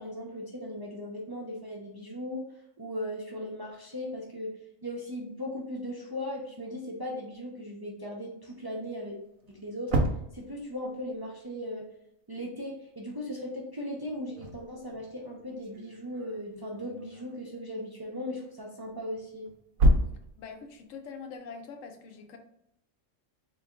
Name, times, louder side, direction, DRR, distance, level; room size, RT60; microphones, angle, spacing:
voice 1, 0.0-2.4 2.8-4.6 4.8-9.2 9.5-10.0 10.3-11.8 12.3-19.5, left 1 dB, 35° right, -2 dB, 0.4 m, -38 dB
sound 1, 8.9-9.0 9.4-11.1 14.0-17.6 18.8-21.0, right 1 dB, 85° right, 1.0 m, -30 dB
voice 2, 20.4-22.4, left 5 dB, 85° left, 5 dB, 1.0 m, -43 dB
3.8 x 2.7 x 3.5 m, 0.77 s
omnidirectional pair, 1.3 m